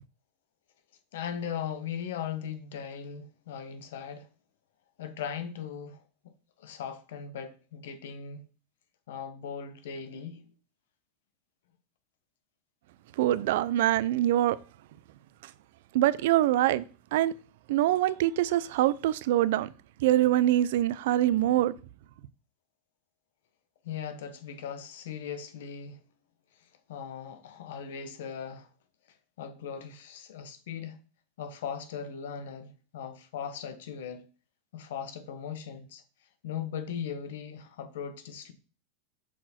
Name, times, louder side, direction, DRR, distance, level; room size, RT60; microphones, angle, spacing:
voice 1, 1.1-4.3 5.0-6.0 6.6-8.4 9.1-10.5 23.8-26.0 26.9-28.7 29.4-31.0 31.4-34.3 34.7-36.0 36.4-38.5, left 7 dB, 80° left, 1.0 m, -38 dB
voice 2, 13.2-14.6 15.9-16.8 17.1-17.3 17.7-19.7 20.0-21.7, right 13 dB, 70° right, 0.4 m, -24 dB
6.0 x 4.5 x 4.2 m
supercardioid pair, 140°, 0 cm